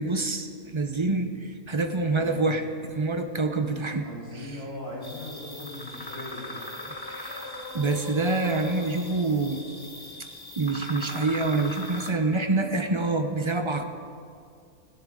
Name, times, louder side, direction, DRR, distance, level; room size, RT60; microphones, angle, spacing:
voice 1, 0.0-2.6 2.9-4.1 7.1-7.5 7.7-9.6 10.6-13.8, right 3 dB, 30° right, 6 dB, 0.6 m, -26 dB
voice 2, 2.1-2.5 3.4-6.6, left 1 dB, 60° left, -7 dB, 4.7 m, -40 dB
sound 1, 5.0-12.1, left 1 dB, 15° left, 1.0 m, -39 dB
18.5 x 16.0 x 3.8 m, 2.3 s
omnidirectional pair, 1.6 m